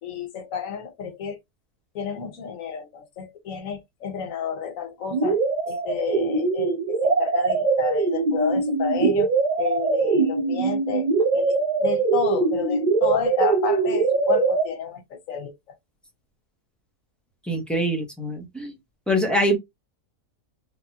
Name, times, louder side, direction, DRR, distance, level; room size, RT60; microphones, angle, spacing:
voice 1, 0.0-1.4 1.9-5.4 5.7-9.3 9.6-15.5, left 7 dB, 75° left, 1.2 m, -30 dB
sound 1, 5.1-14.7, right 4 dB, 45° right, 0.6 m, -22 dB
voice 2, 17.5-18.7 19.1-19.6, equal, ahead, 0.7 m, -24 dB
3.4 x 2.1 x 2.7 m
omnidirectional pair, 1.4 m